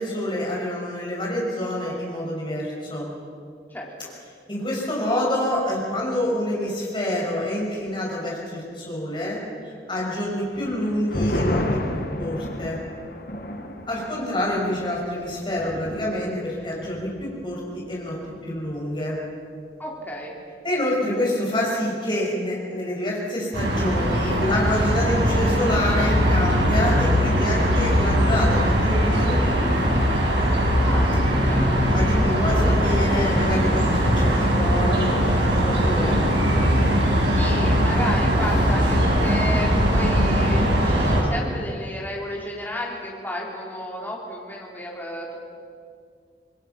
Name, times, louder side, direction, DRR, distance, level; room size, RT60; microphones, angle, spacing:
voice 1, 0.0-3.1 4.5-11.6 11.9-12.8 13.9-18.2 18.4-19.2 20.6-29.9 31.9-36.2, left 1 dB, 25° left, -3 dB, 6.3 m, -27 dB
voice 2, 3.7-4.1 19.8-20.3 30.8-31.7 37.3-45.4, left 1 dB, 10° left, -3 dB, 3.9 m, -33 dB
sound 1, 10.5-17.5 17.8-17.9 18.3-18.7, left 1 dB, 55° left, 1.9 m, -31 dB
sound 2, 23.5-41.2, equal, 90° right, 5.8 m, -20 dB
27.0 x 20.5 x 5.9 m, 2.2 s
head